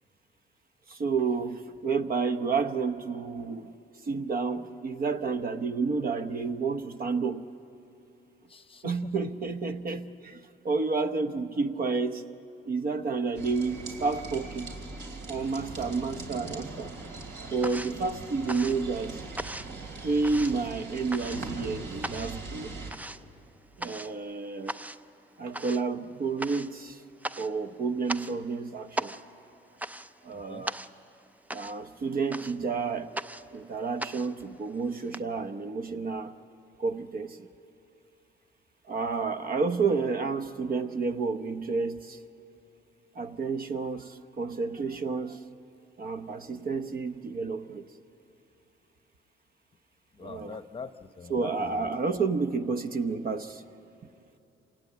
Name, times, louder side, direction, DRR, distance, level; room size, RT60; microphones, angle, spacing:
voice 1, 0.9-3.7 4.0-7.5 8.8-12.3 12.7-14.7 15.3-16.9 17.5-19.2 20.0-22.8 23.8-24.8 25.4-27.0 27.4-29.2 30.2-30.8 31.5-33.2 33.5-36.3 36.8-37.5 38.9-42.2 43.1-45.4 46.0-47.9 50.2-50.6 51.3-53.6, right 4 dB, 45° right, 0.9 m, -30 dB
voice 2, 8.5-9.3 30.3-30.7 50.1-51.9, left 5 dB, 25° left, 0.8 m, -43 dB
sound 1, 13.4-22.9, right 3 dB, 70° right, 3.0 m, -41 dB
sound 2, 16.0-16.6 16.9-35.2, right 1 dB, 10° right, 0.5 m, -40 dB
26.5 x 18.0 x 8.5 m
cardioid pair, 90°, 20 cm